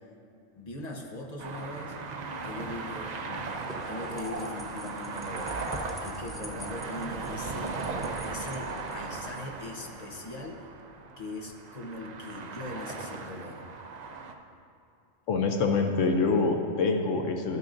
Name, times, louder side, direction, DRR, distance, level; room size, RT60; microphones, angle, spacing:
voice 1, 0.6-2.0 2.4-3.5 3.9-7.8 8.2-10.7 11.2-13.7, left 2 dB, 35° left, 1 dB, 0.9 m, -40 dB
sound 1, 1.4-14.3, right 4 dB, 55° right, 0.5 m, -37 dB
sound 2, 3.5-9.4, equal, ahead, 0.5 m, -47 dB
voice 2, 15.3-17.6, left 4 dB, 75° left, 4 dB, 1.0 m, -25 dB
13.0 x 9.4 x 2.6 m, 2.6 s
omnidirectional pair, 1.3 m